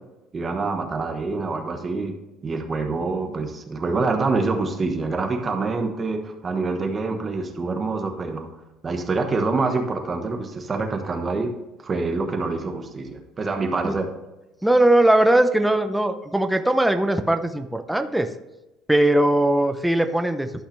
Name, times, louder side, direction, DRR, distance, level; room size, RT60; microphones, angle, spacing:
voice 1, 0.3-2.1 2.4-8.5 8.8-11.5 11.8-14.0, right 3 dB, 25° right, 5 dB, 1.2 m, -26 dB
voice 2, 14.6-18.3 18.9-20.5, right 1 dB, 5° right, 6 dB, 0.6 m, -19 dB
12.0 x 5.6 x 3.4 m, 1.0 s
cardioid pair, 130°, 0 cm